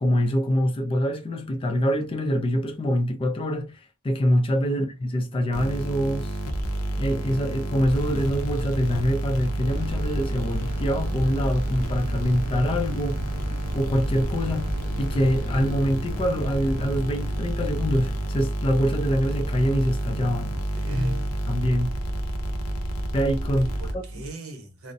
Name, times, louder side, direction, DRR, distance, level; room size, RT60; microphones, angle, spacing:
voice 1, 0.0-6.4 7.0-13.2 13.7-20.5 20.9-21.1 21.5-22.0 23.1-24.0, equal, 25° left, 0.3 m, -25 dB
sound 1, 5.5-24.3, right 1 dB, 85° left, 0.6 m, -29 dB
sound 2, 9.7-18.2, equal, 40° right, 0.5 m, -34 dB
voice 2, 20.7-21.5 23.5-24.9, right 2 dB, 70° right, 0.9 m, -39 dB
2.5 x 2.0 x 2.5 m
head